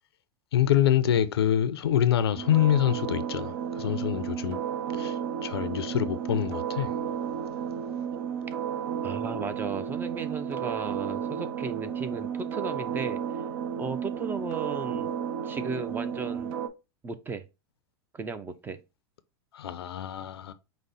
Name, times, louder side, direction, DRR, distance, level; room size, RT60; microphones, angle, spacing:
voice 1, 0.5-4.6 4.9-6.9 19.5-20.5, left 10 dB, 90° left, 0.5 m, -26 dB
sound 1, 2.4-16.7, right 8 dB, 65° right, 0.6 m, -33 dB
voice 2, 9.0-13.2 13.8-15.2 15.4-16.5 17.0-17.4 18.1-18.8, right 4 dB, 15° right, 0.4 m, -35 dB
5.0 x 2.1 x 4.0 m
hypercardioid pair, 120°, 13 cm